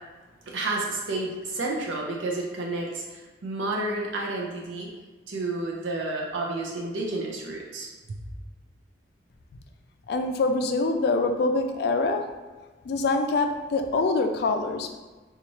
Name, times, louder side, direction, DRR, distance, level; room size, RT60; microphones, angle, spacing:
voice 1, 0.5-4.9 5.3-8.2, right 2 dB, 90° right, -2 dB, 0.5 m, -31 dB
voice 2, 10.1-12.3 12.8-14.9, left 3 dB, 60° left, 6 dB, 0.3 m, -25 dB
3.9 x 2.3 x 3.0 m, 1.3 s
head